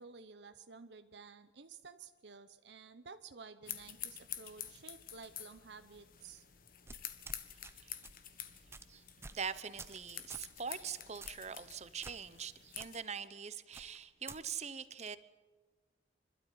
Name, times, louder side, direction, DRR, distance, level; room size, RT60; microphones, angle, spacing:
voice 1, 0.0-6.4, right 5 dB, 70° right, 10 dB, 0.8 m, -53 dB
sound 1, 3.6-13.0, left 10 dB, 50° left, 1.4 m, -49 dB
sound 2, 6.9-7.7 8.0-8.2 8.7-8.9 9.2-9.4 9.8-10.0 10.3-10.5 11.2-11.5 12.0-12.5 12.8-12.9 13.7-14.4, right 3 dB, 15° right, 0.8 m, -50 dB
voice 2, 9.3-15.2, right 6 dB, 40° right, 14 dB, 0.9 m, -43 dB
25.5 x 12.5 x 9.3 m, 1.3 s
head